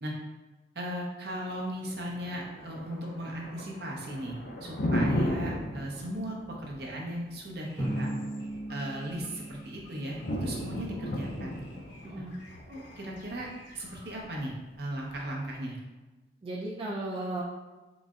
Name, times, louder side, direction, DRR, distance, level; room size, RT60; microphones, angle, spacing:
voice 1, 0.7-8.1 8.7-11.6 12.1-12.2 12.7-13.5 13.7-15.8, right 1 dB, 60° right, -2 dB, 0.7 m, -37 dB
Thunder, 1.4-15.4, left 1 dB, 50° left, 0.4 m, -36 dB
sound 1, 7.6-14.2, left 1 dB, 80° left, 0.8 m, -54 dB
Drum, 7.8-10.4, right 1 dB, 5° left, 1.1 m, -36 dB
voice 2, 12.0-12.4 16.4-17.4, right 2 dB, 30° right, -5 dB, 0.4 m, -35 dB
3.9 x 3.1 x 2.4 m, 1.2 s
head